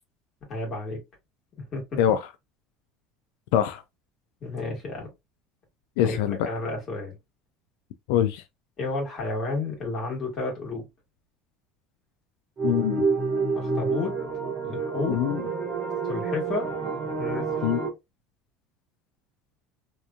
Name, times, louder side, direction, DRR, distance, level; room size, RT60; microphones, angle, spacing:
voice 1, 0.5-1.0 1.7-2.0 4.4-5.1 6.0-7.1 8.8-10.9 13.5-14.2 14.6-15.2 16.0-16.7 17.2-17.5, left 3 dB, 25° left, 1.4 m, -31 dB
voice 2, 2.0-2.3 3.5-3.8 6.0-6.4 8.1-8.4 12.6-13.1 15.1-15.4 17.6-17.8, left 10 dB, 80° left, 0.3 m, -23 dB
sound 1, 12.6-17.9, right 4 dB, 25° right, 1.2 m, -28 dB
2.9 x 2.5 x 2.2 m
cardioid pair, 175°, 0 cm